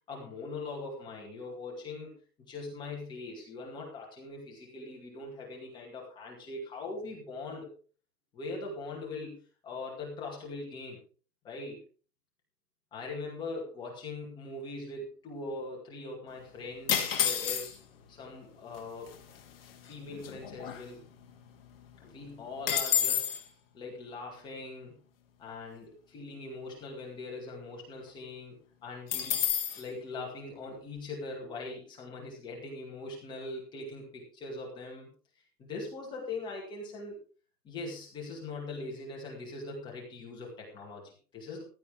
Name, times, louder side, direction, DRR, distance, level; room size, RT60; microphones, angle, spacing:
voice 1, 0.1-2.1 2.4-7.7 8.3-11.0 11.4-11.8 12.9-17.8 18.1-19.1 19.9-21.1 22.0-23.3 23.7-25.0 25.4-29.4 29.8-35.1 35.7-37.2 37.6-41.6, left 3 dB, 10° left, -3 dB, 2.3 m, -41 dB
sound 1, 16.9-18.0 18.8-18.9 19.1-19.4 19.8-21.3 21.6-21.7 22.0-23.4 29.1-29.8, left 9 dB, 35° left, 2.3 m, -30 dB
15.5 x 11.5 x 3.6 m, 0.39 s
hypercardioid pair, 170°, 50 cm